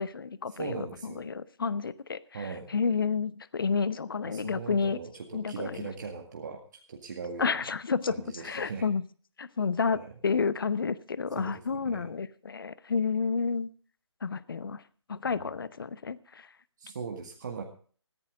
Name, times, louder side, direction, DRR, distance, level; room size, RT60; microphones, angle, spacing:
voice 1, 0.0-5.0 5.3-5.9 7.4-9.0 9.4-13.7 14.2-14.8 15.1-16.5, left 5 dB, 50° left, 0.8 m, -30 dB
voice 2, 0.5-1.3 2.3-2.7 4.3-6.6 6.9-7.5 8.1-8.9 9.9-10.1 11.4-12.1 15.4-15.5 16.8-17.6, right 5 dB, 40° right, 1.9 m, -39 dB
14.5 x 14.0 x 3.8 m
figure-of-eight pair, 150°, 15 cm